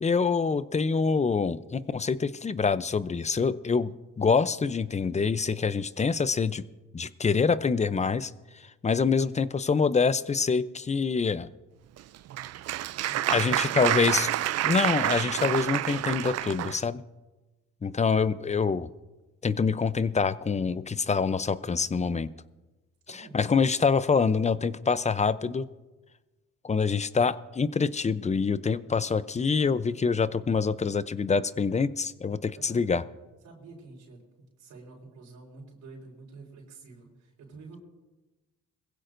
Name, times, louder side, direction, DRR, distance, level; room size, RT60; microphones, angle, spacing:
voice 1, 0.0-3.9 4.2-6.6 6.9-8.3 8.8-11.5 13.3-14.3 14.6-17.0 17.8-18.9 19.4-22.3 23.1-25.7 26.6-33.0, left 5 dB, 25° left, 15 dB, 0.6 m, -26 dB
Applause, 12.0-16.8, right 13 dB, 55° right, 0.4 m, -28 dB
voice 2, 13.1-14.0 23.1-23.4 32.6-32.9 33.4-34.2 34.6-37.8, right 4 dB, 80° right, -2 dB, 4.3 m, -48 dB
22.0 x 15.5 x 2.6 m, 1.2 s
cardioid pair, 90°, 30 cm